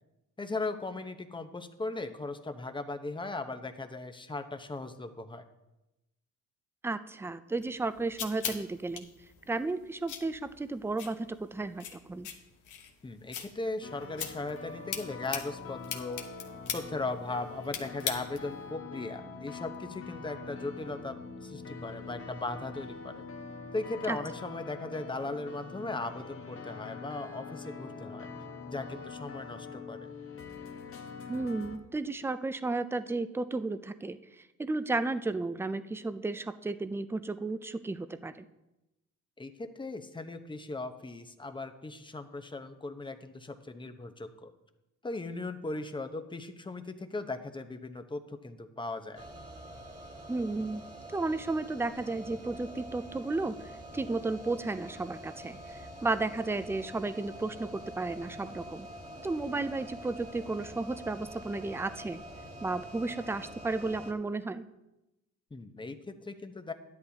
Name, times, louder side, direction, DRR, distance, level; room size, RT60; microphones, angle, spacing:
voice 1, 0.4-5.4 13.0-16.3 16.7-23.2 23.7-28.3 28.7-30.0 39.4-44.5 45.0-49.2 65.5-66.7, left 3 dB, 15° left, 7 dB, 0.9 m, -38 dB
voice 2, 6.8-9.1 9.5-12.3 24.1-24.2 31.3-34.2 34.6-38.4 50.3-50.8 51.1-58.9 59.2-62.2 62.6-64.7, right 3 dB, 10° right, 12 dB, 0.5 m, -33 dB
sound 1, 7.6-18.6, left 8 dB, 85° left, 1.2 m, -42 dB
sound 2, 13.8-31.8, left 4 dB, 45° left, 1.2 m, -44 dB
sound 3, 49.1-64.1, equal, 25° right, 1.7 m, -46 dB
13.0 x 10.5 x 2.8 m, 0.95 s
cardioid pair, 90°, 30 cm